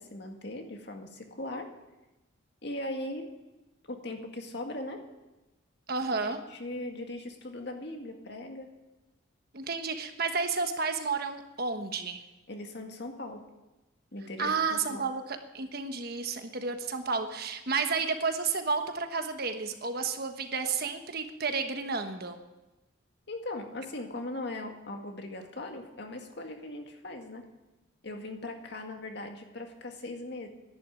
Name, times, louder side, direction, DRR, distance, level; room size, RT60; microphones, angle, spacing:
voice 1, 0.0-1.7 2.6-3.3 3.9-5.0 6.1-8.7 12.5-13.4 14.1-15.1 23.3-27.4 28.0-30.5, left 1 dB, 60° left, 4 dB, 2.0 m, -39 dB
voice 2, 5.9-6.4 9.5-12.2 14.4-22.4, right 4 dB, 50° right, 7 dB, 1.3 m, -31 dB
11.5 x 11.0 x 9.0 m, 1.0 s
head